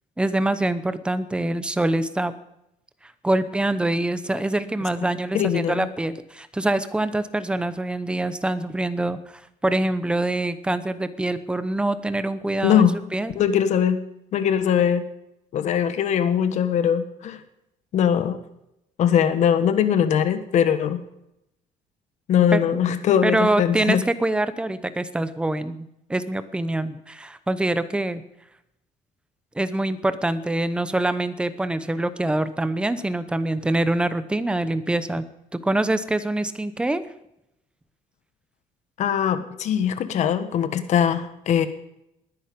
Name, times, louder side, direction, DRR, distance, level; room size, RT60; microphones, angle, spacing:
voice 1, 0.2-2.3 3.2-12.8 13.1-13.3 22.5-22.8 23.2-28.2 29.5-35.2 35.5-37.0, right 1 dB, 5° right, 12 dB, 0.9 m, -25 dB
voice 2, 5.3-5.9 12.6-13.0 13.3-14.0 14.3-15.0 15.5-17.4 17.9-18.4 19.0-21.0 22.3-24.0 39.0-41.7, left 8 dB, 55° left, 10 dB, 1.4 m, -21 dB
20.0 x 10.0 x 5.3 m, 0.84 s
cardioid pair, 140°, 14 cm